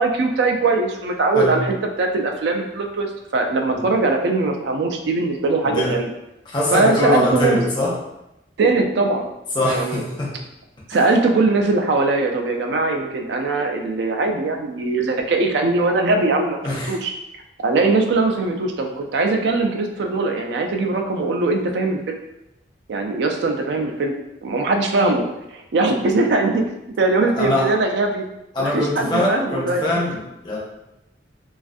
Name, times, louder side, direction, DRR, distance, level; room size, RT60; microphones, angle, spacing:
voice 1, 0.0-6.1 6.7-7.6 8.6-9.3 9.6-10.0 10.9-17.1 17.6-22.2 22.9-24.2 24.4-25.3 25.5-26.6 27.0-28.3 28.6-29.9, right 3 dB, 70° right, 3 dB, 0.3 m, -21 dB
voice 2, 5.6-6.0 6.5-8.0 9.5-10.3 10.9-11.1 16.6-17.0 27.3-27.7 28.5-30.6, left 1 dB, 25° left, -5 dB, 0.5 m, -23 dB
2.3 x 2.3 x 2.5 m, 0.89 s
head